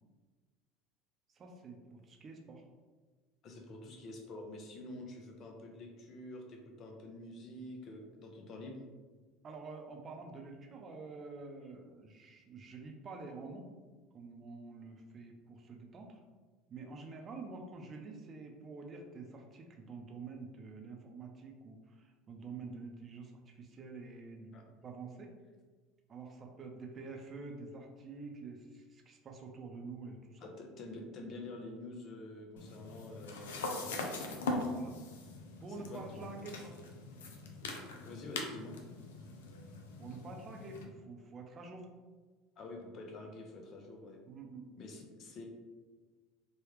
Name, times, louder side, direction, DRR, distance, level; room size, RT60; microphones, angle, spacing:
voice 1, 1.3-2.6 4.8-4.9 9.4-13.7 14.1-16.2 16.7-25.3 26.1-30.5 33.6-33.7 34.7-35.0 35.6-36.7 40.0-41.9 44.3-44.7, right 3 dB, 35° right, 2 dB, 0.6 m, -48 dB
voice 2, 3.4-8.8 24.5-24.6 30.4-34.4 35.9-36.4 37.9-38.8 42.6-44.2 44.8-45.4, left 2 dB, 45° left, 2 dB, 0.7 m, -47 dB
sound 1, 32.6-40.8, left 2 dB, 85° left, 0.4 m, -42 dB
3.3 x 2.3 x 3.1 m, 1.4 s
hypercardioid pair, 85°, 0 cm